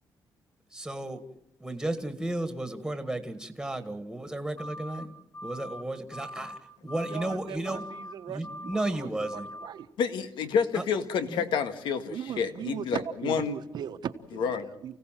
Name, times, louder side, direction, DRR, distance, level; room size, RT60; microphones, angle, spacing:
voice 1, 0.7-1.2 1.6-5.1 5.4-7.9 8.3-9.5 10.7-10.8 11.3-11.4, right 1 dB, 5° right, 7 dB, 1.7 m, -33 dB
sound 1, 4.6-5.1 5.3-5.8 6.1-6.6 6.9-7.4 7.7-8.1 8.4-8.9 9.2-9.7, left 1 dB, 40° left, 4.3 m, -41 dB
voice 2, 7.0-9.1 9.6-9.9 12.1-15.0, right 9 dB, 65° right, 10 dB, 1.3 m, -38 dB
voice 3, 10.0-13.5 14.3-14.7, left 6 dB, 90° left, 8 dB, 2.0 m, -29 dB
29.5 x 16.5 x 7.6 m, 0.82 s
cardioid pair, 145°, 8 cm